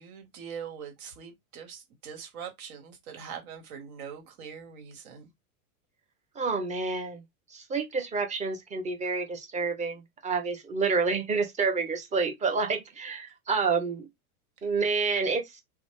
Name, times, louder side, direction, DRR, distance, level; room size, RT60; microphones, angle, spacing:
voice 1, 0.0-5.2, right 7 dB, 75° right, 1.3 m, -42 dB
voice 2, 6.4-7.2 7.5-14.1 14.6-15.4, right 4 dB, 15° right, 0.6 m, -28 dB
2.9 x 2.1 x 3.1 m
supercardioid pair, 125°, 44 cm